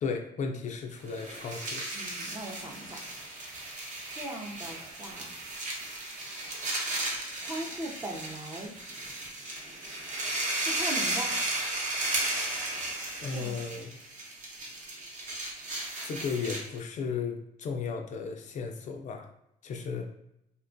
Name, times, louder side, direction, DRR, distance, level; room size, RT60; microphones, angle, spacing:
voice 1, 0.0-1.8 13.2-13.9 16.0-19.3 19.6-20.1, left 5 dB, 45° left, 4 dB, 0.4 m, -35 dB
sound 1, 1.0-16.8, right 2 dB, 50° right, 0.8 m, -35 dB
voice 2, 1.9-3.0 4.1-5.3 7.4-8.7 10.4-11.3 13.2-13.6, right 1 dB, 20° right, 1 dB, 0.5 m, -39 dB
2.8 x 2.2 x 2.5 m, 0.79 s
cardioid pair, 110°, 17 cm